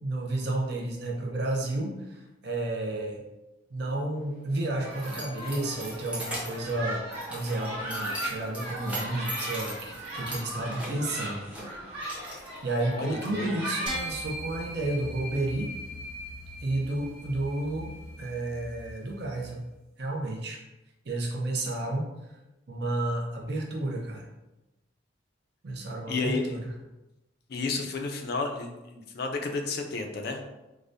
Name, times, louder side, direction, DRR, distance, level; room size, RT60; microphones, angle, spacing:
voice 1, 0.0-3.2 3.7-7.0 7.3-11.4 12.6-15.7 16.6-19.7 20.0-20.6 21.1-22.1 22.7-24.3 25.6-26.6, right 2 dB, 55° right, 0 dB, 0.6 m, -31 dB
Keys jangling, 4.2-13.3, right 1 dB, 5° right, 0.6 m, -41 dB
sound 1, 4.8-14.0, right 1 dB, 25° right, 1.2 m, -38 dB
voice 2, 12.9-13.5 26.1-26.5 27.5-30.4, left 3 dB, 55° left, 4 dB, 0.4 m, -31 dB
sound 2, 13.9-19.5, equal, 90° right, 1.3 m, -40 dB
4.8 x 2.1 x 2.6 m, 1.0 s
head